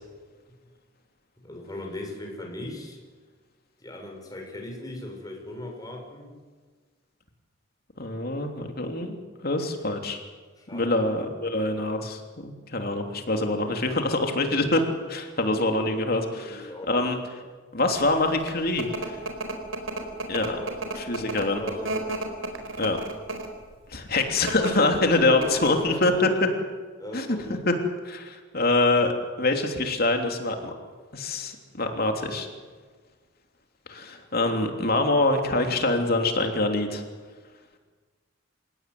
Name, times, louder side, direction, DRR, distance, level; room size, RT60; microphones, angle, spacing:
voice 1, 1.4-3.0 3.8-6.3 10.6-10.9 13.6-13.7 16.4-17.0 20.1-20.3 20.5-20.8 21.2-22.0 25.3-26.2 27.0-27.6, left 1 dB, 20° left, 1 dB, 6.3 m, -38 dB
voice 2, 8.0-9.1 9.4-10.2 10.7-17.2 17.7-19.2 20.3-20.6 20.9-21.6 22.8-23.0 23.9-26.3 27.1-27.3 27.7-27.8 28.0-29.1 29.4-30.7 31.1-32.5 33.9-37.0, left 2 dB, 50° left, 4 dB, 3.2 m, -25 dB
sound 1, 18.2-23.6 24.3-24.7 25.1-25.2 25.4-25.9, right 2 dB, 75° right, 4.4 m, -32 dB
28.5 x 17.0 x 9.5 m, 1.5 s
head